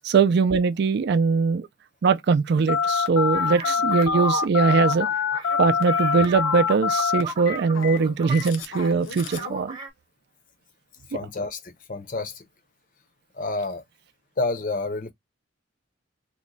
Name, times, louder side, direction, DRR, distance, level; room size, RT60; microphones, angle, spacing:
voice 1, 0.0-1.7 2.0-5.1 5.6-9.8 11.1-11.2, right 5 dB, 55° right, 0.3 m, -21 dB
Telephone, 2.7-9.5, left 6 dB, 75° left, 0.7 m, -25 dB
sound 1, 3.3-8.9 9.2-9.9, right 3 dB, 25° right, 0.8 m, -36 dB
voice 2, 11.1-11.6 11.9-12.3 13.4-13.8 14.4-15.1, left 3 dB, 40° left, 0.7 m, -28 dB
3.0 x 2.2 x 3.8 m
head